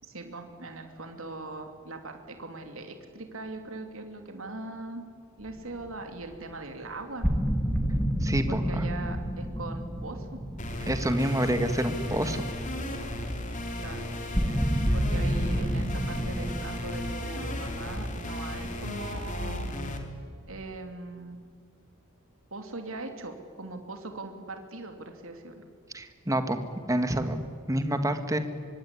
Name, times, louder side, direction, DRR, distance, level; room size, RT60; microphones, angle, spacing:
voice 1, 0.0-5.0 5.4-7.3 8.5-10.4 13.8-14.1 14.9-19.7 20.5-21.4 22.5-25.7, right 2 dB, 70° right, 5 dB, 3.0 m, -40 dB
sound 1, 5.5-5.6 5.8-5.9 7.2-12.3 14.3-16.6, equal, ahead, 2.6 m, -29 dB
voice 2, 8.2-8.8 10.9-12.4 25.9-26.6 26.9-28.4, right 1 dB, 15° right, 8 dB, 1.8 m, -28 dB
sound 2, 10.6-20.0, left 1 dB, 35° left, 3.1 m, -35 dB
25.0 x 23.5 x 10.0 m, 2.1 s
head